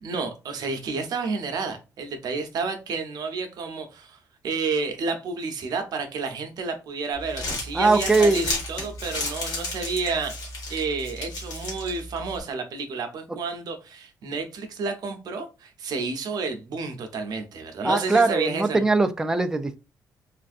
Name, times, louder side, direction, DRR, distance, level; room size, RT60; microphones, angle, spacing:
voice 1, 0.0-4.2 4.4-10.3 10.7-18.8, right 4 dB, 70° right, 0.7 m, -30 dB
Crumpling crinkling, 7.1-12.4, left 2 dB, 85° left, 1.5 m, -33 dB
voice 2, 7.7-8.5 17.8-19.8, right 3 dB, 10° right, 0.4 m, -21 dB
3.3 x 2.5 x 2.5 m
cardioid pair, 85°, 7 cm